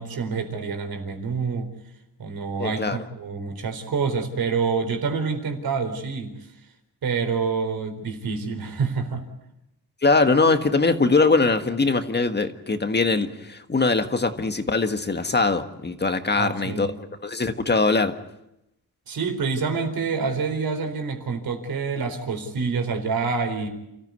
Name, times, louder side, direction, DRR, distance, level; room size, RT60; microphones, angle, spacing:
voice 1, 0.0-1.7 2.2-6.4 7.0-9.3 16.4-16.9 19.1-23.7, right 5 dB, 70° right, 6 dB, 4.4 m, -27 dB
voice 2, 2.6-3.0 10.0-16.9 17.2-18.1, left 3 dB, 30° left, 7 dB, 1.7 m, -22 dB
29.5 x 15.0 x 9.6 m, 0.86 s
wide cardioid pair, 120°, 37 cm